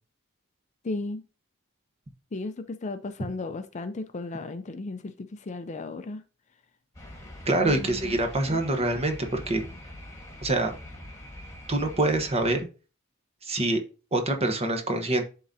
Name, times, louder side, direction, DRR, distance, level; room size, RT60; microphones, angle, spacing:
voice 1, 0.8-1.2 2.3-6.2 7.6-8.2 8.5-8.9, left 2 dB, 35° left, 0.5 m, -35 dB
sound 1, 6.9-12.6, left 1 dB, 15° left, 1.5 m, -43 dB
voice 2, 7.5-9.6 10.4-10.7 11.7-12.7 13.4-13.8 14.1-15.2, right 2 dB, 30° right, 1.0 m, -25 dB
11.0 x 3.8 x 2.7 m
head